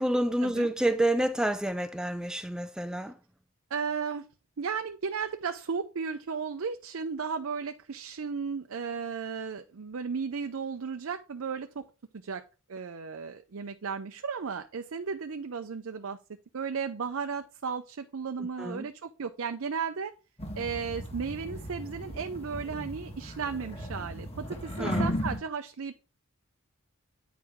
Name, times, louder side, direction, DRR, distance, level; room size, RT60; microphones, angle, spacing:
voice 1, 0.0-3.2 18.6-18.9 24.8-25.2, right 1 dB, 5° right, 0.3 m, -28 dB
voice 2, 3.7-4.3 4.6-11.9 12.2-12.4 12.7-16.2 16.5-20.1 20.6-25.9, right 5 dB, 65° right, 0.5 m, -35 dB
sound 1, 20.4-25.4, equal, 25° left, 1.4 m, -35 dB
9.2 x 4.7 x 3.5 m
head